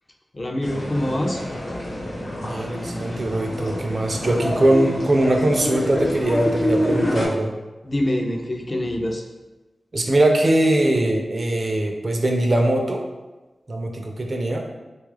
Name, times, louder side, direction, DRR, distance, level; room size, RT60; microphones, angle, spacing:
voice 1, 0.3-1.4 7.8-9.2, left 1 dB, 30° left, 1 dB, 0.4 m, -25 dB
sound 1, 0.6-7.3, left 1 dB, 80° left, 0.9 m, -27 dB
voice 2, 2.4-7.5 9.9-13.0 13.7-14.6, right 1 dB, 45° right, 2 dB, 0.4 m, -21 dB
3.2 x 2.3 x 3.2 m, 1.1 s
wide cardioid pair, 105°, 0 cm